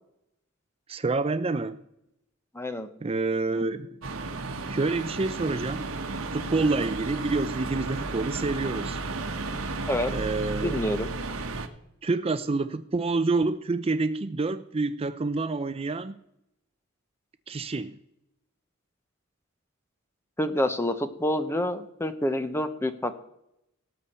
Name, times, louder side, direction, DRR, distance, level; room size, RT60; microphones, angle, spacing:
voice 1, 0.9-1.8 3.0-4.0 4.7-5.9 6.3-9.0 10.1-10.8 12.0-16.2 17.5-18.0, right 3 dB, 30° right, 11 dB, 0.5 m, -28 dB
voice 2, 2.5-2.9 9.9-10.1 10.6-11.1 20.4-23.2, left 1 dB, 10° left, 10 dB, 0.9 m, -27 dB
sound 1, 4.0-11.7, right 3 dB, 80° right, 1.3 m, -33 dB
18.0 x 8.3 x 4.3 m, 0.81 s
head